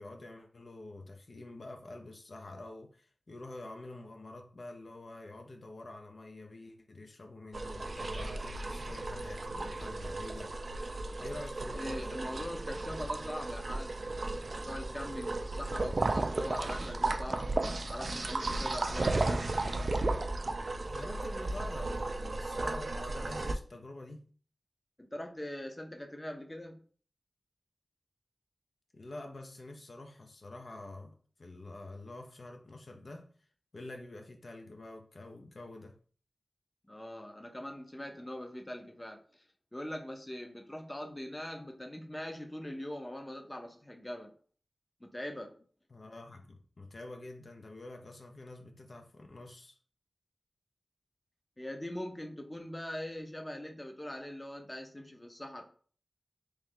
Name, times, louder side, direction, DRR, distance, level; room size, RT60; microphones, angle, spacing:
voice 1, 0.0-10.5 11.2-12.2 20.8-24.3 28.9-33.3 33.7-36.0 45.9-49.8, left 2 dB, 65° left, 0.5 m, -47 dB
sound 1, 7.5-23.5, right 2 dB, 60° right, 0.3 m, -34 dB
voice 2, 11.8-17.5 17.9-19.4 25.0-26.8 36.9-39.4 39.7-44.3 45.0-45.5 51.6-55.6, left 1 dB, 20° left, 0.6 m, -42 dB
3.2 x 2.7 x 3.7 m
wide cardioid pair, 60°, 0 cm